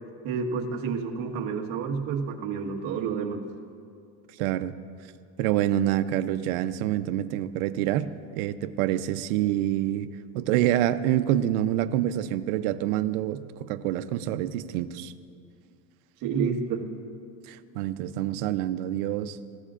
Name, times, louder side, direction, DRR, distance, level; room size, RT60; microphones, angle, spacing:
voice 1, 0.2-3.4 16.2-16.9, right 5 dB, 50° right, 1 dB, 1.5 m, -29 dB
voice 2, 4.4-4.7 5.4-8.1 8.3-15.1 17.5-19.4, right 12 dB, 85° right, 11 dB, 0.8 m, -27 dB
26.5 x 15.0 x 2.5 m, 2.4 s
cardioid pair, 160°, 42 cm